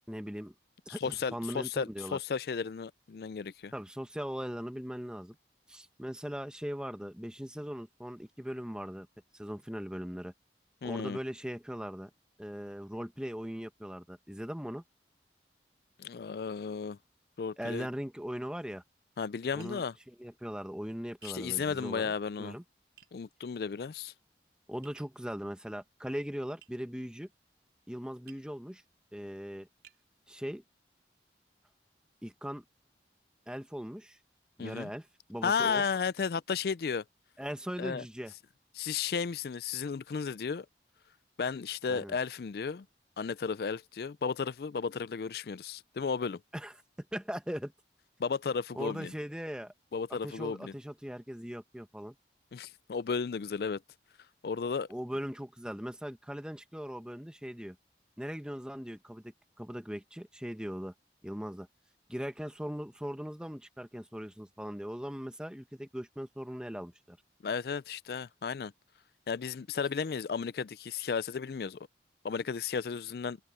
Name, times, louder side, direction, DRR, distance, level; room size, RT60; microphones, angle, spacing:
voice 1, 0.1-0.5 0.9-2.2 3.7-5.4 5.7-9.1 9.3-10.3 10.8-12.1 12.4-14.8 17.6-18.8 19.5-22.1 22.4-22.6 24.7-27.3 27.9-28.8 29.1-29.7 30.3-30.6 32.2-32.6 33.5-34.2 34.6-35.8 37.4-38.3 41.9-42.2 46.5-47.7 48.7-49.7 50.1-52.1 54.9-57.8 58.2-60.9 61.2-61.7 62.1-67.2, equal, 5° right, 1.2 m, -39 dB
voice 2, 1.0-3.7 10.8-11.2 16.0-17.0 17.4-17.9 19.2-19.9 21.2-22.6 23.1-24.1 34.6-34.9 35.4-37.0 37.8-38.0 38.8-40.7 41.4-42.9 43.2-46.4 48.2-49.1 49.9-50.7 52.5-53.8 54.4-54.9 67.4-68.7 69.3-71.9 72.2-73.4, left 5 dB, 55° left, 0.4 m, -34 dB
Tap, 19.6-19.8 21.2-21.4 23.0-23.1 24.8-25.2 26.6-26.8 28.3-28.5 29.2-29.3 29.8-30.0, right 9 dB, 60° right, 4.1 m, -57 dB
open air
head